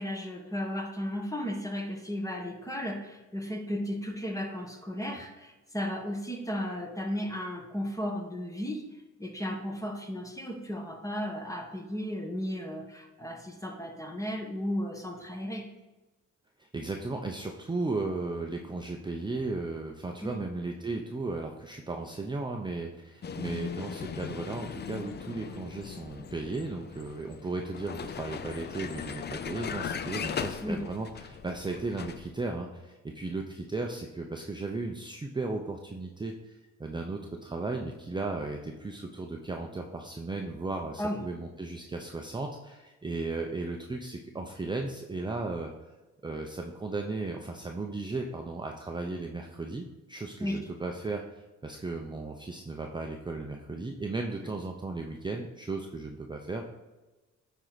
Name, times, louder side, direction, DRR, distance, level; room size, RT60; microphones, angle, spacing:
voice 1, 0.0-8.8 9.2-15.7 20.2-20.4 30.6-30.8 41.0-41.2 50.4-50.6, equal, 10° left, 3 dB, 1.3 m, -34 dB
voice 2, 16.6-45.7 46.2-56.6, right 3 dB, 15° right, 2 dB, 0.7 m, -35 dB
Vehicle, 23.2-32.3, left 7 dB, 35° left, 0.5 m, -38 dB
9.6 x 4.5 x 4.1 m, 1.1 s
cardioid pair, 90°, 30 cm